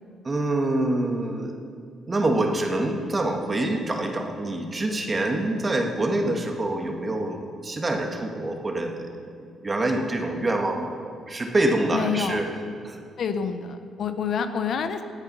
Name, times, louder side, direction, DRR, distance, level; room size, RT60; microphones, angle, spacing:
voice 1, 0.2-1.5 2.1-9.1 9.4-10.9 11.3-12.5 12.8-13.0, right 2 dB, 25° right, 3 dB, 1.9 m, -26 dB
voice 2, 11.9-12.4 13.2-15.0, left 6 dB, 60° left, 9 dB, 0.9 m, -27 dB
17.0 x 9.6 x 5.6 m, 2.4 s
cardioid pair, 90°, 0 cm